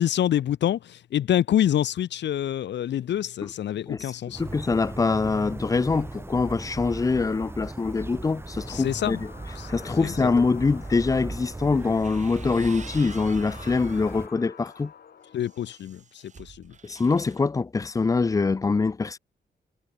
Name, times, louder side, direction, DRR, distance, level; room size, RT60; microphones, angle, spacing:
voice 1, 0.0-4.4 8.7-9.2 9.6-9.7 10.0-10.3 15.3-16.7, left 11 dB, 85° left, 0.7 m, -26 dB
sound 1, 4.3-14.3, right 2 dB, 15° right, 2.0 m, -38 dB
voice 2, 4.4-9.2 9.7-14.9 16.8-19.2, left 4 dB, 20° left, 0.4 m, -24 dB
sound 2, 7.8-15.8, left 8 dB, 60° left, 3.2 m, -49 dB
sound 3, 11.8-14.1 14.6-17.4, right 6 dB, 40° right, 2.8 m, -48 dB
wide cardioid pair, 165°, 18 cm